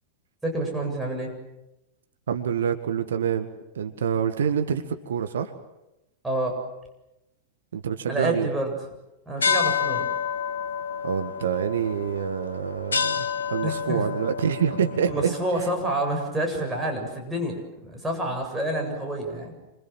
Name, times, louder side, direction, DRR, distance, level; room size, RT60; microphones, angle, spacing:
voice 1, 0.4-1.3 6.2-6.6 8.1-8.7 9.3-10.1 13.6-14.0 15.1-19.6, right 1 dB, 10° right, 1 dB, 7.8 m, -28 dB
voice 2, 2.3-5.5 7.7-8.5 11.0-15.3, right 8 dB, 65° right, 8 dB, 1.8 m, -26 dB
sound 1, 9.4-16.3, left 6 dB, 75° left, 1.5 m, -29 dB
28.0 x 26.0 x 7.7 m, 0.93 s
figure-of-eight pair, 90°, 0 cm